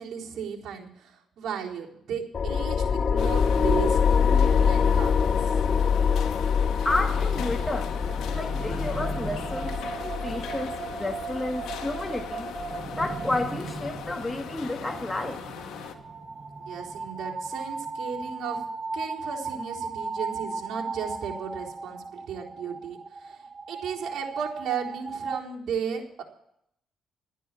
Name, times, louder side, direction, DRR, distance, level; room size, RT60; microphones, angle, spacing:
voice 1, 0.0-5.4 16.6-18.6 18.9-26.2, right 7 dB, 75° right, -2 dB, 4.0 m, -35 dB
sound 1, 2.3-13.4, left 6 dB, 45° left, 0.5 m, -25 dB
sound 2, 3.2-15.9, left 8 dB, 80° left, 1.8 m, -40 dB
sound 3, 6.7-25.4, right 4 dB, 35° right, 1.7 m, -37 dB
voice 2, 6.8-8.0 8.3-12.5 13.0-15.4, left 2 dB, 15° left, 4 dB, 1.6 m, -31 dB
13.5 x 10.0 x 7.3 m, 0.72 s
cardioid pair, 90°, 0 cm